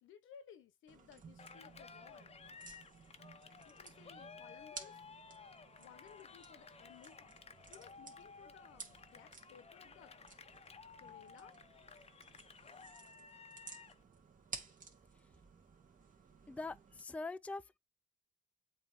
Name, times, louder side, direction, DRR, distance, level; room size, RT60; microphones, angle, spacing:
voice 1, 0.0-2.3 3.6-4.9 5.8-7.4 7.7-10.1 11.0-11.5, left 8 dB, 85° left, 1.2 m, -59 dB
sound 1, 0.9-17.0, right 4 dB, 40° right, 2.2 m, -55 dB
Cheering, 1.4-14.0, left 5 dB, 30° left, 0.8 m, -56 dB
voice 2, 16.5-17.8, left 3 dB, 5° left, 0.4 m, -44 dB
7.9 x 3.2 x 3.7 m
cardioid pair, 90°, 20 cm